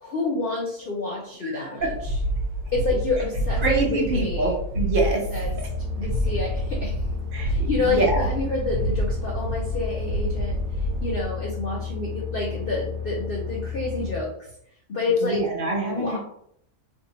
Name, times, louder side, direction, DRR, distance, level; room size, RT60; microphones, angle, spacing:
voice 1, 0.0-2.2 2.7-3.6 3.9-4.5 5.3-5.6 6.0-7.0 7.4-10.6 11.0-14.5 14.9-15.4 15.9-16.2, left 3 dB, 65° left, -2 dB, 0.5 m, -28 dB
voice 2, 1.4-1.7 3.6-5.2 7.3-8.3 15.2-16.2, right 3 dB, 50° right, 0 dB, 0.7 m, -25 dB
sound 1, 1.8-11.2, equal, 65° right, 1.0 m, -28 dB
sound 2, 5.5-14.2, left 7 dB, 90° right, 1.1 m, -33 dB
2.8 x 2.3 x 3.8 m, 0.69 s
omnidirectional pair, 1.6 m